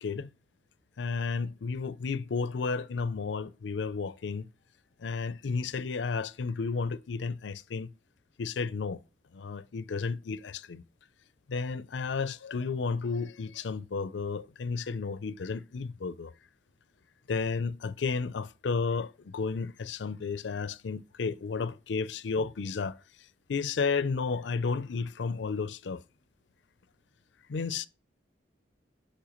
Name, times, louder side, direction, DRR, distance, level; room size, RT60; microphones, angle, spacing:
voice 1, 1.0-4.5 5.0-7.9 8.4-9.0 9.3-10.8 11.5-16.3 17.3-26.0 27.5-27.9, left 4 dB, 75° left, 0.5 m, -32 dB
12.0 x 4.4 x 3.0 m
head